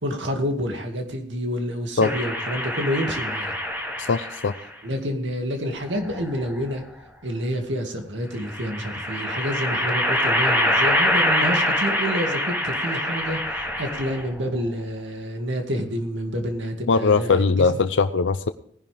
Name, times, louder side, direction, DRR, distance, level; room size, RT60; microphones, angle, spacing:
voice 1, 0.0-3.6 4.8-6.8 7.2-17.7, equal, 75° right, 4 dB, 2.3 m, -28 dB
sound 1, 2.0-4.6 5.8-6.8 8.4-14.4, left 1 dB, 15° right, 3.9 m, -25 dB
voice 2, 4.0-4.5 16.9-18.5, left 4 dB, 90° left, 10 dB, 0.6 m, -20 dB
18.5 x 11.0 x 3.5 m, 0.63 s
head